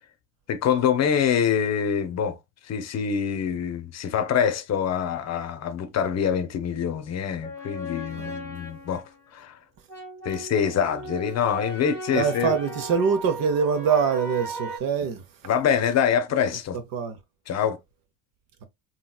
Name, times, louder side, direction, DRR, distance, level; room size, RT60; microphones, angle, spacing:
voice 1, 0.5-2.4 2.7-9.0 9.3-9.6 10.2-12.6 15.4-16.8 17.5-17.8, left 8 dB, 40° left, 0.7 m, -25 dB
sound 1, 7.4-9.2 9.9-14.8, right 1 dB, 5° left, 1.1 m, -37 dB
voice 2, 12.1-15.2 16.7-17.2, right 6 dB, 55° right, 0.8 m, -24 dB
2.9 x 2.8 x 2.3 m
supercardioid pair, 75°, 40 cm